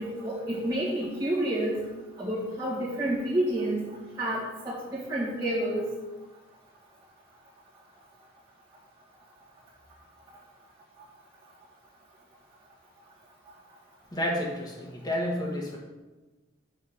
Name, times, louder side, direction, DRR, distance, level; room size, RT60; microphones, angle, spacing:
voice 1, 0.0-1.8 2.2-3.9 4.2-5.9, right 1 dB, 15° right, -10 dB, 1.7 m, -29 dB
voice 2, 14.1-15.8, equal, 20° left, -1 dB, 1.4 m, -30 dB
5.8 x 5.3 x 6.5 m, 1.2 s
head